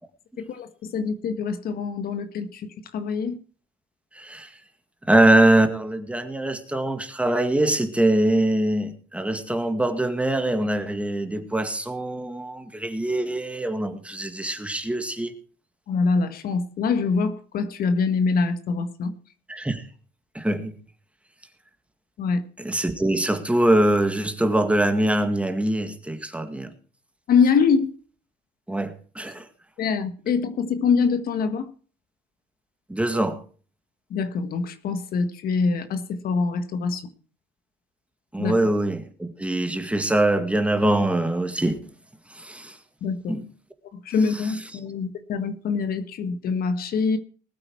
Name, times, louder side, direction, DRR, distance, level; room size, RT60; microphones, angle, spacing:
voice 1, 0.4-3.4 15.9-19.1 22.2-22.4 27.3-27.9 29.8-31.7 34.1-37.1 38.4-38.5 43.0-43.4 43.9-47.2, left 5 dB, 60° left, 10 dB, 1.7 m, -24 dB
voice 2, 4.1-4.5 5.1-15.3 19.5-19.9 20.3-20.7 22.6-26.7 28.7-29.5 32.9-33.4 38.3-41.8 42.3-42.8 43.3-43.5, right 1 dB, 5° right, 8 dB, 2.0 m, -23 dB
20.0 x 8.9 x 4.7 m, 0.41 s
cardioid pair, 110°, 17 cm